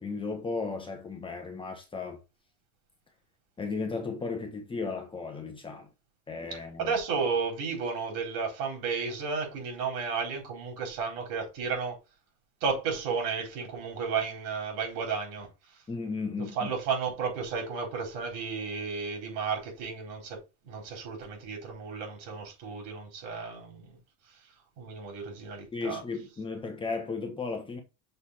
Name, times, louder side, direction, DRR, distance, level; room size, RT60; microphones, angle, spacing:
voice 1, 0.0-2.2 3.6-5.9 6.3-6.9 15.9-16.7 25.7-27.8, left 4 dB, 15° left, 1.2 m, -35 dB
voice 2, 6.8-12.0 12.6-15.5 16.5-20.4 20.7-24.0 24.8-26.0, right 5 dB, 70° right, 4.3 m, -33 dB
6.7 x 4.1 x 4.2 m
cardioid pair, 150°, 33 cm